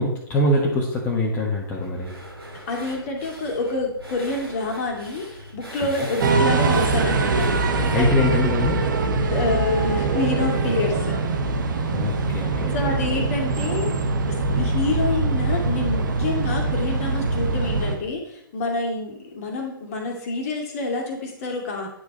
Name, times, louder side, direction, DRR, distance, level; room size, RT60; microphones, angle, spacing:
voice 1, 0.0-2.1 7.9-8.8 11.9-12.9 14.5-14.6, left 1 dB, 15° left, -4 dB, 1.4 m, -23 dB
sound 1, 1.8-7.7, equal, 85° right, 2.5 m, -41 dB
voice 2, 2.7-8.1 9.3-11.2 12.7-21.9, left 3 dB, 40° left, 0 dB, 2.1 m, -28 dB
sound 2, 6.2-18.0, right 3 dB, 55° right, 1.1 m, -23 dB
9.6 x 4.8 x 4.1 m, 0.73 s
figure-of-eight pair, 115°, 12 cm